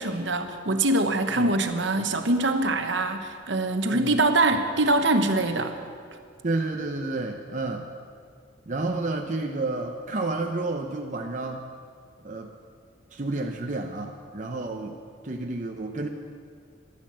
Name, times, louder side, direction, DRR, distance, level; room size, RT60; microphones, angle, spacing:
voice 1, 0.0-5.8, right 2 dB, 65° right, 7 dB, 1.1 m, -24 dB
voice 2, 3.9-4.2 6.4-7.9 8.7-11.7 12.2-12.5 13.1-15.0 15.2-16.1, right 2 dB, 40° right, 2 dB, 0.7 m, -30 dB
13.5 x 11.0 x 7.5 m, 2.2 s
head